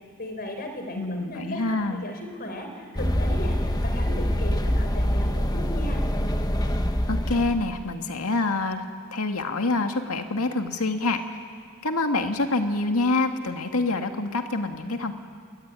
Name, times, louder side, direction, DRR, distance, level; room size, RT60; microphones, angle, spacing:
voice 1, 0.2-6.0, left 1 dB, 45° left, 5 dB, 4.3 m, -36 dB
voice 2, 1.0-2.0 7.1-8.8 9.1-11.4 11.8-15.1, left 2 dB, 80° left, 5 dB, 2.0 m, -26 dB
sound 1, 3.0-7.8, equal, 20° left, 1.3 m, -25 dB
27.5 x 22.5 x 9.7 m, 2.3 s
head